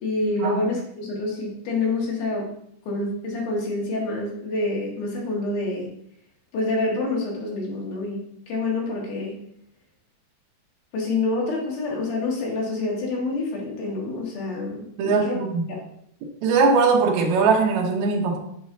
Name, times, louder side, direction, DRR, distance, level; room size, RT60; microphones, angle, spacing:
voice 1, 0.0-2.5 2.9-5.9 6.5-8.2 8.5-9.4 10.9-15.4 15.7-15.8, left 2 dB, 55° left, -3 dB, 2.9 m, -27 dB
voice 2, 15.0-15.6 16.4-18.4, right 4 dB, 80° right, 1 dB, 1.6 m, -20 dB
7.8 x 6.2 x 2.7 m, 0.72 s
omnidirectional pair, 4.7 m